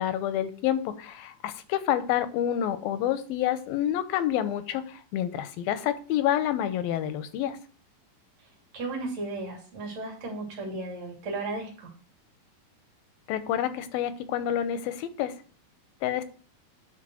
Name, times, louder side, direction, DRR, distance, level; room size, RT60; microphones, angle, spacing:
voice 1, 0.0-7.6 13.3-15.3 16.0-16.2, left 11 dB, 85° left, 12 dB, 2.6 m, -28 dB
voice 2, 8.7-11.9, right 2 dB, 50° right, 0 dB, 3.7 m, -35 dB
10.5 x 4.1 x 6.2 m, 0.41 s
omnidirectional pair, 4.1 m